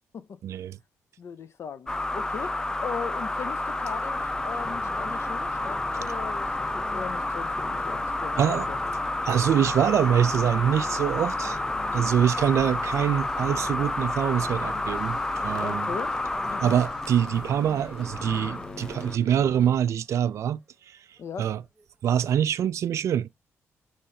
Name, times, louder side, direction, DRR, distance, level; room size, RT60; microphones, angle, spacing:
voice 1, 0.4-0.8 8.4-8.6 9.2-11.6 11.9-15.9 16.6-20.6 20.9-21.0 21.4-21.6 22.0-23.3, right 9 dB, 65° right, 0.4 m, -24 dB
voice 2, 1.2-8.8 15.6-16.2 16.5-16.8 21.2-21.5, left 7 dB, 55° left, 0.7 m, -38 dB
sound 1, 1.9-19.2, left 2 dB, 15° left, 0.4 m, -30 dB
sound 2, 4.1-19.7, left 2 dB, 35° left, 1.4 m, -45 dB
sound 3, 9.6-22.2, right 2 dB, 10° right, 1.0 m, -53 dB
5.6 x 3.2 x 2.6 m
cardioid pair, 95°, 5 cm